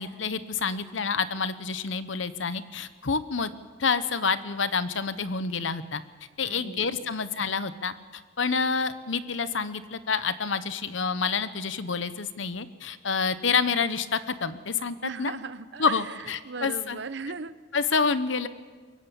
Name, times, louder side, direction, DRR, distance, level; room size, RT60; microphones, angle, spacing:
voice 1, 0.0-3.5 3.8-6.0 6.4-7.9 8.4-15.3 15.8-17.0 17.7-18.5, left 5 dB, 80° left, 13 dB, 1.0 m, -28 dB
voice 2, 6.4-7.1 15.0-16.2 16.4-17.5, right 4 dB, 65° right, 15 dB, 0.7 m, -37 dB
23.0 x 17.0 x 7.2 m, 1.5 s
head